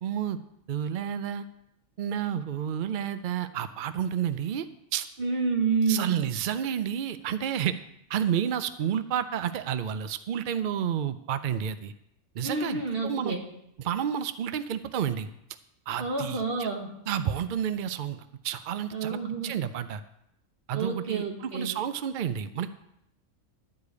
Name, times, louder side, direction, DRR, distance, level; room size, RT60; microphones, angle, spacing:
voice 1, 0.0-0.4 0.7-1.4 2.0-5.1 5.9-7.8 8.1-11.9 12.3-13.4 13.8-15.3 15.9-16.7 17.1-20.0 20.7-22.7, right 9 dB, 70° right, 11 dB, 0.4 m, -30 dB
voice 2, 5.2-6.2 12.4-13.4 16.0-16.9 18.9-19.5 20.7-21.7, right 4 dB, 45° right, 2 dB, 1.6 m, -29 dB
12.0 x 5.0 x 8.2 m, 0.79 s
omnidirectional pair, 1.4 m